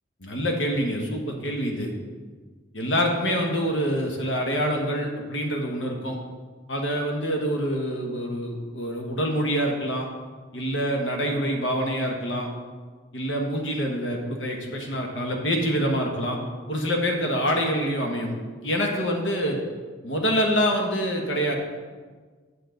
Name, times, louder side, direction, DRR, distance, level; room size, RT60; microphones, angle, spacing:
voice 1, 0.2-1.9 2.7-6.2 6.7-10.1 10.5-12.5 13.1-16.4 16.7-18.3 18.6-19.6 20.0-21.5, equal, 75° left, 2 dB, 1.2 m, -26 dB
8.1 x 7.0 x 3.9 m, 1.5 s
head